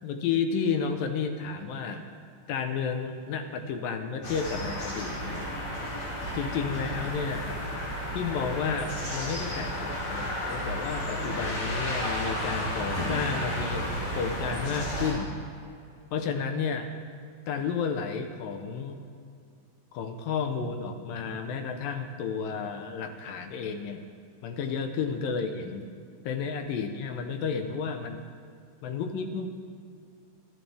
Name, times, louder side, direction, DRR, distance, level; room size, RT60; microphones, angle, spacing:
voice 1, 0.0-2.1 2.5-5.6 6.4-7.6 8.1-15.3 16.1-16.9 17.5-19.0 19.9-24.0 24.4-25.9 26.2-28.2 28.8-29.5, left 6 dB, 80° left, 6 dB, 2.6 m, -32 dB
sound 1, 4.2-15.1, equal, 45° left, 5.0 m, -32 dB
26.5 x 9.9 x 3.5 m, 2.3 s
omnidirectional pair, 4.1 m